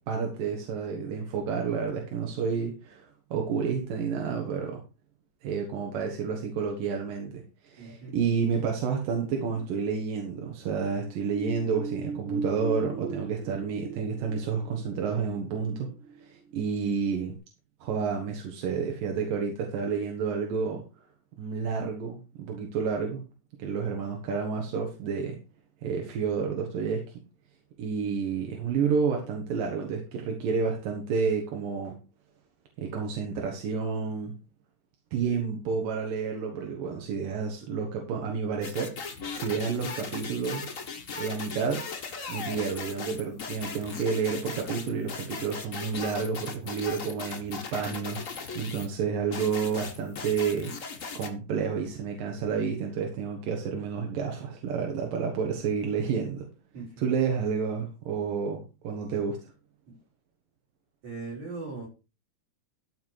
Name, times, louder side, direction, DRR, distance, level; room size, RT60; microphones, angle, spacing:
voice 1, 0.1-4.8 5.4-15.9 16.2-17.4 17.8-20.8 21.4-23.2 23.6-25.4 25.8-27.0 27.8-31.9 32.8-34.3 35.1-38.9 39.3-40.7 41.2-41.8 42.3-56.5 57.0-59.4, right 6 dB, 90° right, 2 dB, 3.4 m, -30 dB
voice 2, 7.8-8.2 56.7-57.0 59.9-60.0 61.0-61.9, right 3 dB, 60° right, -3 dB, 7.2 m, -39 dB
sound 1, 10.6-17.0 17.3-17.4, right 4 dB, 40° right, 1.1 m, -39 dB
sound 2, 38.6-48.9 49.3-51.3, left 5 dB, 80° left, 0.7 m, -38 dB
13.0 x 6.0 x 4.8 m, 0.30 s
omnidirectional pair, 3.8 m